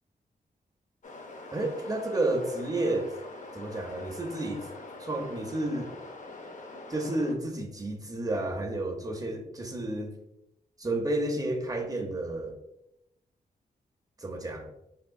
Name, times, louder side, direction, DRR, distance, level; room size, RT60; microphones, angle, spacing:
sound 1, 1.0-7.3, left 2 dB, 45° left, 0.6 m, -44 dB
voice 1, 1.5-3.1 3.5-4.7 5.0-5.9 6.9-10.1 10.8-12.6 14.2-14.7, right 2 dB, 20° right, 3 dB, 0.6 m, -31 dB
3.5 x 2.3 x 2.3 m, 0.85 s
supercardioid pair, 45°, 18 cm